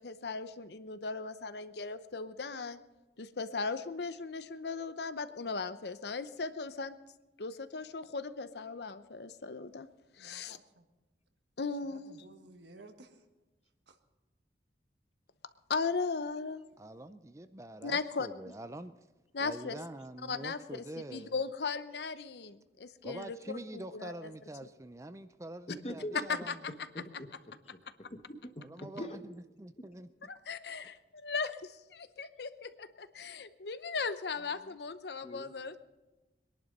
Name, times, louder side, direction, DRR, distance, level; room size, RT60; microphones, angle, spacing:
voice 1, 0.0-2.8 3.2-6.9 7.4-9.9 10.2-10.6 11.6-12.2 15.7-16.6 17.8-18.3 19.3-19.8 20.3-20.6 21.1-23.4 23.7-24.1 26.3-26.5 30.3-35.8, left 4 dB, 70° left, 12 dB, 0.8 m, -37 dB
voice 2, 10.2-10.9 11.9-13.2 13.9-14.0 26.1-26.2, right 3 dB, 80° right, 6 dB, 1.5 m, -53 dB
voice 3, 16.8-19.0 19.4-21.4 23.0-26.6 28.6-29.2 29.6-30.1 34.3-34.8, right 1 dB, 15° right, 11 dB, 0.5 m, -45 dB
voice 4, 25.7-26.2 26.7-27.3 27.7-27.8 28.1-29.2 29.8-29.9 35.2-35.5, equal, 35° left, 7 dB, 1.2 m, -43 dB
22.0 x 11.0 x 5.4 m, 1.1 s
head